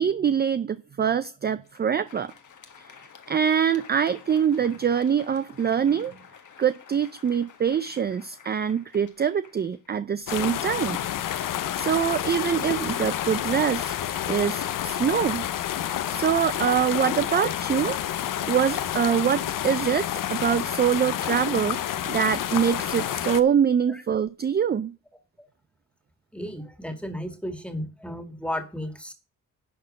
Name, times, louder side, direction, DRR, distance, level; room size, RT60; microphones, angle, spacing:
voice 1, 0.0-2.3 2.8-2.9 3.3-6.1 6.6-11.0 11.5-13.9 14.3-15.5 16.1-18.0 18.5-24.9, right 8 dB, 30° right, 0.4 m, -24 dB
Crowd, 1.6-10.5, left 7 dB, 65° left, 1.5 m, -51 dB
sound 1, 10.3-23.4, left 11 dB, 85° left, 0.7 m, -29 dB
voice 2, 26.3-29.1, equal, 5° left, 2.0 m, -34 dB
11.0 x 4.2 x 6.5 m
cardioid pair, 90°, 32 cm